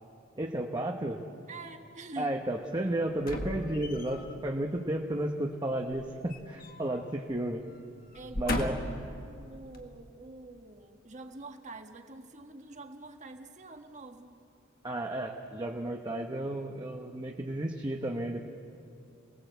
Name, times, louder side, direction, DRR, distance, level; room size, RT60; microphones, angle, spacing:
voice 1, 0.4-1.2 2.2-7.6 8.3-8.7 14.8-18.5, right 1 dB, 20° right, 1 dB, 1.1 m, -33 dB
voice 2, 1.5-2.4 8.1-8.9 9.2-14.4, right 3 dB, 35° right, 5 dB, 1.5 m, -46 dB
sound 1, 3.2-4.3 5.9-7.0 7.3-7.5 8.1-9.1 9.7-9.8, left 1 dB, 45° left, 1.7 m, -36 dB
28.0 x 18.5 x 8.1 m, 2.5 s
head